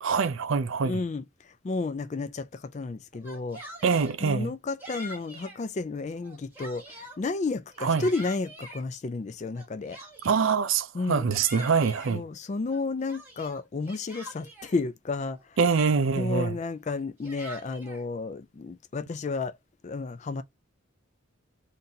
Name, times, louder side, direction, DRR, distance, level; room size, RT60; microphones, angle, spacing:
voice 1, 0.0-1.0 3.8-4.5 7.8-8.1 10.2-12.2 15.6-16.6, right 5 dB, 70° right, 0.4 m, -24 dB
voice 2, 0.8-3.6 4.2-10.0 10.9-11.3 12.1-15.6 16.1-19.6 19.8-20.4, left 3 dB, 35° left, 0.3 m, -32 dB
Yell, 3.1-4.2 4.8-5.6 6.1-7.2 7.7-8.8 9.5-10.5 11.0-12.1 12.7-14.8 15.3-15.4 15.7-16.2 17.0-18.0, equal, 10° right, 1.4 m, -45 dB
4.0 x 2.6 x 2.7 m
head